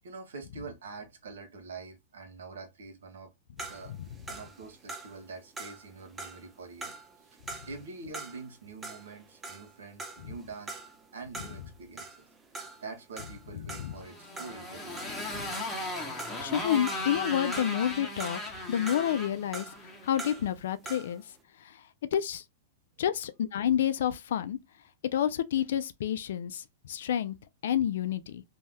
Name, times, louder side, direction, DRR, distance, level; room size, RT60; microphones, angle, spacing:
voice 1, 0.0-3.3 3.7-3.9 4.3-6.9 7.2-7.3 7.7-10.7 11.1-12.2 12.8-15.6, right 4 dB, 80° right, 1.0 m, -45 dB
sound 1, 3.6-8.6 8.8-15.9 16.2-17.9 18.2-21.2, right 3 dB, 15° right, 0.5 m, -44 dB
Motorcycle, 14.0-20.4, left 2 dB, 10° left, 0.9 m, -37 dB
voice 2, 16.4-18.4 18.7-19.7 20.0-21.2 21.6-21.8 22.1-22.4 23.0-24.6 25.1-27.4 27.6-28.4, left 10 dB, 75° left, 0.3 m, -29 dB
2.7 x 2.1 x 3.3 m
hypercardioid pair, 125°, 0 cm